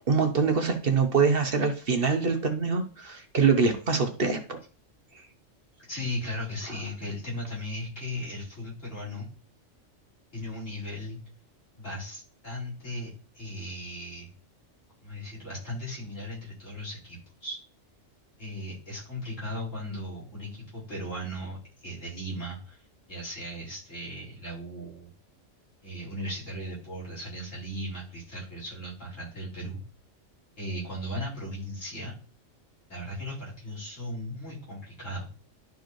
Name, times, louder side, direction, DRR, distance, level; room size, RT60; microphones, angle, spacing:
voice 1, 0.1-4.6, right 5 dB, 50° right, 5 dB, 1.0 m, -24 dB
voice 2, 5.9-9.3 10.3-11.2 11.8-14.3 15.0-17.6 18.4-21.6 21.8-25.1 25.8-29.8 30.6-32.1 32.9-35.3, equal, 70° left, -7 dB, 4.9 m, -37 dB
11.5 x 4.7 x 3.1 m, 0.38 s
omnidirectional pair, 1.3 m